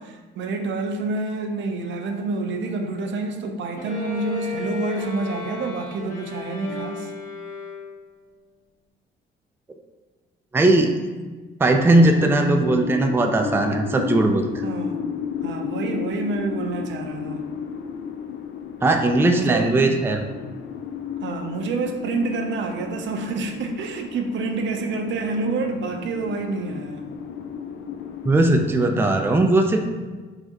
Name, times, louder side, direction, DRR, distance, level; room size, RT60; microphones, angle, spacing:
voice 1, 0.0-7.1 14.6-15.0 15.4-17.4 19.3-19.8 21.2-27.1, right 3 dB, 70° right, 5 dB, 0.6 m, -28 dB
Bowed string instrument, 3.8-8.2, left 4 dB, 40° left, 1.2 m, -34 dB
voice 2, 10.5-10.9 11.6-14.6 18.8-20.2 28.2-29.8, right 2 dB, 10° right, 4 dB, 0.4 m, -18 dB
sound 1, 11.9-28.8, left 6 dB, 70° left, 0.4 m, -33 dB
4.6 x 3.3 x 2.9 m, 1.3 s
cardioid pair, 90°, 20 cm